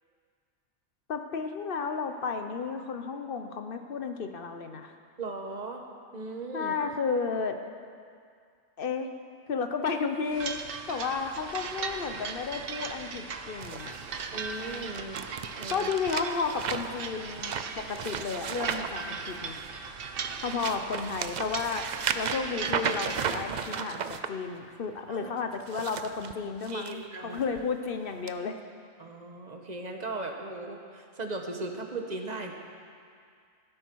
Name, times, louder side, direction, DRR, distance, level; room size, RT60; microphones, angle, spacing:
voice 1, 1.1-4.9 6.5-7.6 8.8-9.1 9.5-13.9 15.7-19.6 20.4-21.8 22.1-28.5, left 5 dB, 50° left, 6 dB, 0.9 m, -32 dB
voice 2, 5.2-5.8 6.1-6.8 14.3-15.2 15.6-15.9 25.1-25.3 26.7-27.4 29.0-32.5, right 2 dB, 35° right, 3 dB, 1.2 m, -37 dB
sound 1, 10.3-23.2, right 5 dB, 50° right, 0.8 m, -38 dB
sound 2, 13.6-19.7 20.2-24.3 25.5-26.9 27.4-27.6 28.3-28.4, right 6 dB, 75° right, 0.4 m, -35 dB
14.5 x 12.5 x 4.6 m, 2.2 s
omnidirectional pair, 1.4 m